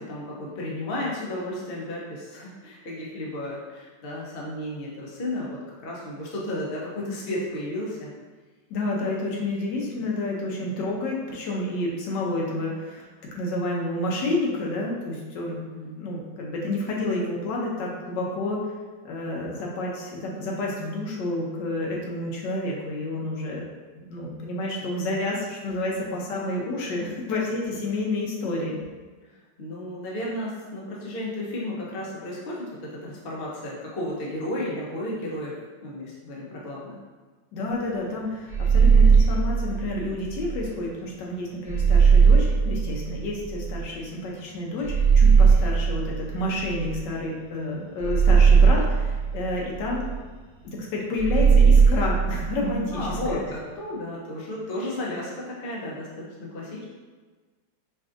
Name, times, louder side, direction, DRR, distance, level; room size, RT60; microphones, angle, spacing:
voice 1, 0.1-8.1 15.6-16.0 28.4-28.5 29.6-35.5 35.8-37.0 52.9-56.8, left 1 dB, 55° left, -5 dB, 0.6 m, -33 dB
voice 2, 8.7-13.0 13.4-15.6 16.0-18.7 19.0-23.7 23.9-28.8 37.5-50.1 50.6-53.4, left 2 dB, 75° left, -2 dB, 1.3 m, -29 dB
sound 1, 38.5-40.7 41.7-43.8 44.8-47.2 48.0-50.2 51.2-53.3, right 6 dB, 55° right, 1.2 m, -19 dB
4.8 x 2.6 x 2.5 m, 1.4 s
omnidirectional pair, 2.0 m